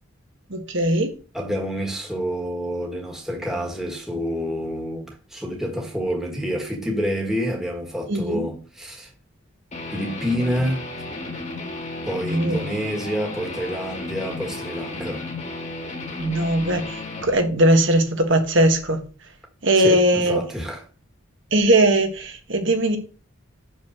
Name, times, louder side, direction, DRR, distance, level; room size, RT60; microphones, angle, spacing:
voice 1, 0.5-1.1 8.1-8.5 12.3-12.8 16.2-19.0 19.6-20.4 21.5-23.0, right 1 dB, 60° right, 1.6 m, -20 dB
voice 2, 1.3-9.1 9.9-10.9 12.0-15.2 19.8-20.8, equal, ahead, 1.6 m, -28 dB
Guitar, 9.7-17.3, left 2 dB, 35° left, 1.5 m, -33 dB
6.3 x 5.5 x 6.6 m
head